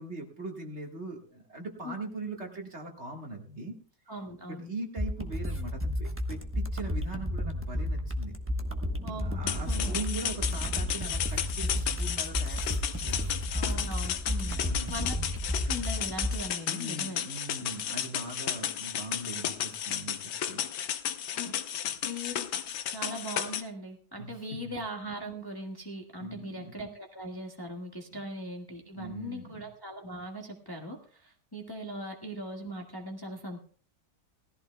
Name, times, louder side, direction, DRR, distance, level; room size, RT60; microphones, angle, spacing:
voice 1, 0.0-3.8 4.5-8.3 9.2-13.3 14.4-15.1 16.6-20.7 24.2-24.8 26.2-26.7 28.1-28.2 28.9-29.6, right 2 dB, 40° right, 1 dB, 1.9 m, -41 dB
voice 2, 4.1-4.7 9.0-9.4 9.7-10.0 13.5-14.6 14.9-17.2 21.3-21.5 22.0-22.5 22.9-33.6, equal, 15° left, 1 dB, 1.4 m, -40 dB
sound 1, 5.0-16.4, left 1 dB, 10° right, 0.9 m, -32 dB
sound 2, 9.5-23.6, left 10 dB, 80° left, 1.4 m, -33 dB
19.5 x 14.5 x 2.3 m, 0.41 s
omnidirectional pair, 1.8 m